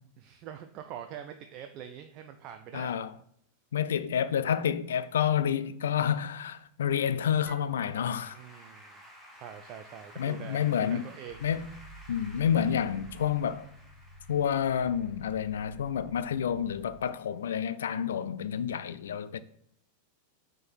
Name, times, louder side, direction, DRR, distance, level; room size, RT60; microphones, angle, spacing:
voice 1, 0.2-3.0 8.3-9.0 9.3-11.5, right 9 dB, 40° right, 0.4 m, -44 dB
voice 2, 2.7-3.1 3.7-8.4 10.2-11.1 11.4-11.7 12.1-13.6 14.3-19.4, left 8 dB, 65° left, 0.4 m, -29 dB
Applause / Keyboard (musical), 7.5-16.8, equal, 10° left, 1.9 m, -54 dB
sound 1, 11.3-17.1, right 2 dB, 25° left, 1.8 m, -52 dB
6.0 x 3.8 x 4.5 m
figure-of-eight pair, 90°, 0 cm